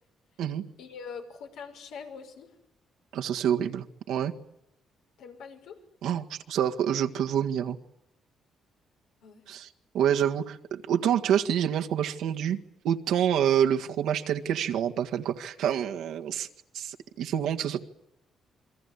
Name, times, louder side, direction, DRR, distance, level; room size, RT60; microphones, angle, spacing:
voice 1, 0.8-2.5 5.2-5.8 9.2-9.4, left 6 dB, 90° left, 3 dB, 5.8 m, -43 dB
voice 2, 3.1-4.3 6.0-7.8 9.5-9.7 9.9-12.6 12.8-16.5 16.7-17.8, right 9 dB, 85° right, 4 dB, 1.8 m, -27 dB
28.5 x 23.0 x 8.3 m, 0.81 s
cardioid pair, 90°, 0 cm